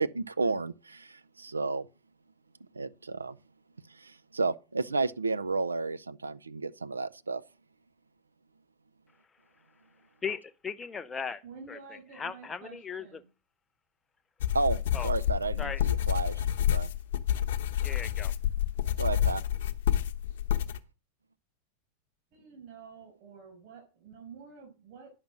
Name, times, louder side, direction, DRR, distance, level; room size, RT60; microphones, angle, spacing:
voice 1, 0.0-1.9 2.7-3.4 3.9-7.4 14.5-14.8 15.0-16.9 18.9-19.4, right 3 dB, 90° right, 0.5 m, -32 dB
voice 2, 10.2-11.4 11.7-11.8 12.2-13.2 14.9-15.1 15.6-15.8 17.8-18.3, left 6 dB, 20° left, 0.8 m, -37 dB
voice 3, 11.4-13.3 22.3-25.1, right 5 dB, 55° right, 5.8 m, -49 dB
sound 1, 14.4-20.8, left 11 dB, 65° left, 0.9 m, -28 dB
10.5 x 5.7 x 6.3 m
figure-of-eight pair, 90°, 0 cm